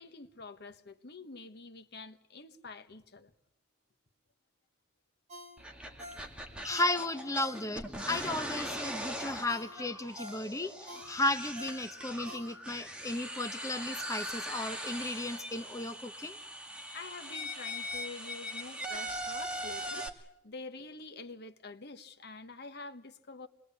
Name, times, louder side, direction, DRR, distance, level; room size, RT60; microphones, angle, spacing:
voice 1, 0.0-3.3 16.9-23.5, left 3 dB, 55° left, 1.4 m, -47 dB
Ringtone, 5.3-8.7 9.1-9.2 9.5-12.9 13.3-13.4, equal, 35° right, 5.1 m, -50 dB
sound 1, 5.6-20.1, equal, 5° right, 2.0 m, -41 dB
voice 2, 6.6-16.4, left 2 dB, 15° left, 1.0 m, -34 dB
26.0 x 21.5 x 8.5 m
head